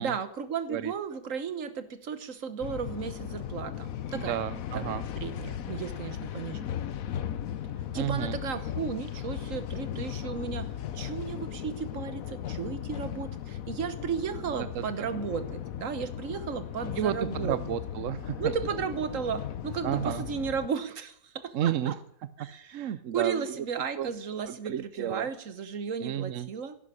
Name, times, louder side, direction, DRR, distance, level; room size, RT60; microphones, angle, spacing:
voice 1, 0.0-4.4 4.7-4.8 5.2-6.7 7.9-17.6 18.4-21.9 22.4-26.8, right 6 dB, 45° right, 12 dB, 1.3 m, -34 dB
sound 1, 2.6-20.7, left 10 dB, 60° left, 0.9 m, -37 dB
voice 2, 4.1-5.1 7.9-8.4 14.6-15.1 17.0-18.5 19.8-20.3 21.5-22.0 22.7-23.7 24.0-24.1 24.4-25.3 26.0-26.5, right 10 dB, 70° right, 14 dB, 0.7 m, -32 dB
11.5 x 11.5 x 9.7 m, 0.69 s
omnidirectional pair, 2.2 m